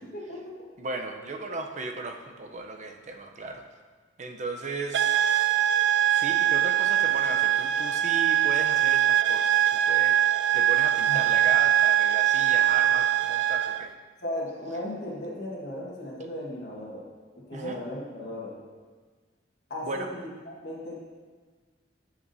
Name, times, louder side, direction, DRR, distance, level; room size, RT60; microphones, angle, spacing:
voice 1, 0.0-0.7 11.1-11.5 14.2-17.1 17.5-18.6 19.7-21.1, left 1 dB, 65° left, -4 dB, 1.6 m, -36 dB
voice 2, 0.8-3.6 4.2-5.2 6.0-10.2 10.5-13.9 17.5-17.8 19.8-20.1, right 3 dB, 40° right, 4 dB, 0.7 m, -36 dB
sound 1, 4.9-13.9, right 11 dB, 75° right, 0.3 m, -22 dB
14.0 x 6.0 x 2.7 m, 1.5 s
head